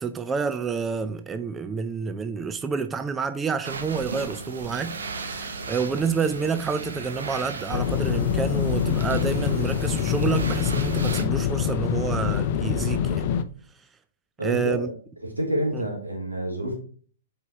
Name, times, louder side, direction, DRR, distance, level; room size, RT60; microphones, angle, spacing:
voice 1, 0.0-13.3 14.4-14.9 15.7-15.8, right 5 dB, 15° right, 0.5 m, -29 dB
sound 1, 3.6-11.2, right 3 dB, 65° right, 1.0 m, -36 dB
sound 2, 7.7-13.4, left 8 dB, 45° left, 0.5 m, -25 dB
voice 2, 14.4-14.9 15.2-16.7, equal, 85° right, 2.9 m, -28 dB
8.2 x 4.8 x 3.0 m
figure-of-eight pair, 110°, 0 cm